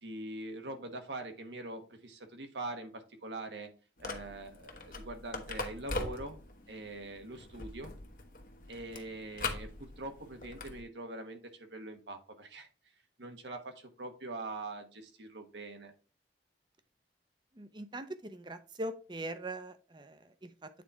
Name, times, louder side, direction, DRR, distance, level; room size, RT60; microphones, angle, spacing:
voice 1, 0.0-3.7 4.0-6.4 6.7-7.9 8.7-12.7 13.2-15.9, right 2 dB, 85° right, 6 dB, 1.3 m, -43 dB
sound 1, 4.0-10.8, left 3 dB, 50° left, 1.0 m, -42 dB
voice 2, 17.6-20.7, right 1 dB, 25° right, 11 dB, 0.6 m, -42 dB
8.5 x 4.2 x 3.4 m, 0.37 s
head